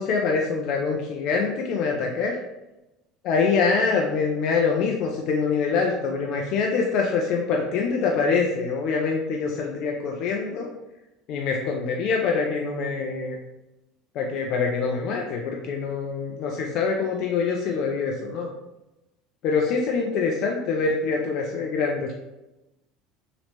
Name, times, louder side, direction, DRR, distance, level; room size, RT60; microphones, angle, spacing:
voice 1, 0.0-2.3 3.2-10.7 11.3-13.4 14.2-18.5 19.4-22.1, left 5 dB, 60° left, 0 dB, 0.4 m, -25 dB
3.0 x 2.0 x 2.8 m, 0.97 s
hypercardioid pair, 80°, 0 cm